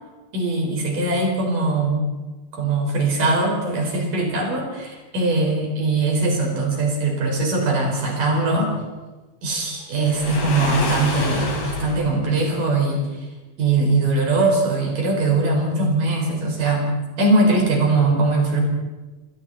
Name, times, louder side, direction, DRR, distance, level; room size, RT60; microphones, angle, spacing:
voice 1, 0.3-2.0 2.5-8.7 9.4-13.0 13.6-16.8 17.2-18.6, right 2 dB, 60° right, 0 dB, 6.5 m, -21 dB
Waves surf, 10.0-12.1, left 2 dB, 45° left, 4.1 m, -27 dB
28.0 x 21.5 x 4.3 m, 1.2 s
omnidirectional pair, 4.2 m